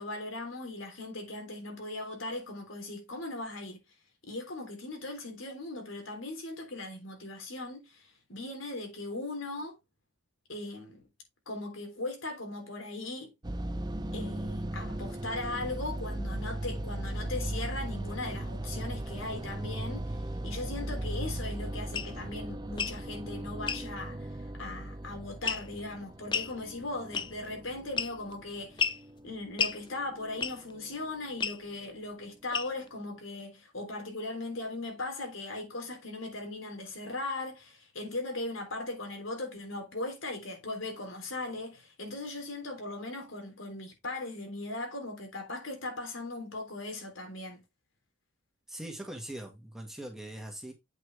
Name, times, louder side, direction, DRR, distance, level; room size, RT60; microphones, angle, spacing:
voice 1, 0.0-3.8 4.2-9.8 10.5-11.1 11.5-13.3 14.1-28.9 29.2-47.6, left 2 dB, 90° left, 3.5 m, -39 dB
sound 1, 13.4-31.8, right 1 dB, 20° right, 0.6 m, -38 dB
sound 2, 21.9-22.1 22.7-23.0 23.7-23.8 25.5-25.8 26.3-26.5 27.1-27.5 28.0-28.3 28.8-29.0 29.6-29.8 30.4-30.7 31.4-31.6 32.5-32.9, left 6 dB, 25° left, 0.4 m, -31 dB
voice 2, 48.7-50.7, right 1 dB, ahead, 2.0 m, -41 dB
8.2 x 6.0 x 3.3 m
head